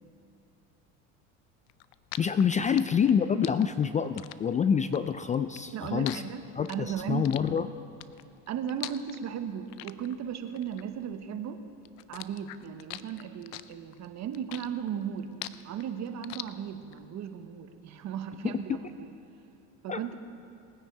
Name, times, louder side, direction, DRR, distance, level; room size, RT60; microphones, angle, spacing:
sound 1, 1.7-11.5 11.8-17.0, left 16 dB, 75° left, 0.6 m, -43 dB
voice 1, 2.2-6.2 6.6-7.7 18.4-18.5 19.9-20.0, left 7 dB, 20° left, 11 dB, 0.3 m, -27 dB
voice 2, 2.7-3.1 5.7-7.3 8.5-11.6 12.1-15.3 15.6-19.1 19.8-20.2, right 8 dB, 50° right, 8 dB, 1.1 m, -36 dB
20.0 x 9.8 x 4.7 m, 2.5 s
supercardioid pair, 95°, 35 cm